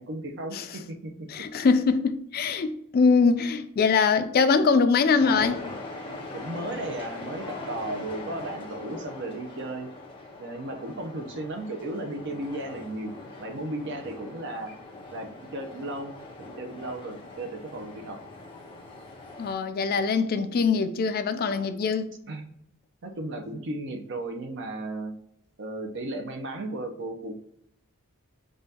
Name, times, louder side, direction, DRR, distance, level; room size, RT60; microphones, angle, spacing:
voice 1, 0.0-1.1 1.4-1.5 6.3-9.9 10.4-13.1 13.4-14.7 15.1-16.1 16.4-18.2 22.3-22.4 23.0-25.1 25.6-27.3, right 2 dB, 55° right, 0.7 m, -35 dB
voice 2, 1.3-5.6 19.4-22.1, left 5 dB, 45° left, 0.3 m, -23 dB
sound 1, 5.2-19.5, left 2 dB, 25° left, 0.9 m, -41 dB
5.5 x 2.5 x 2.8 m
head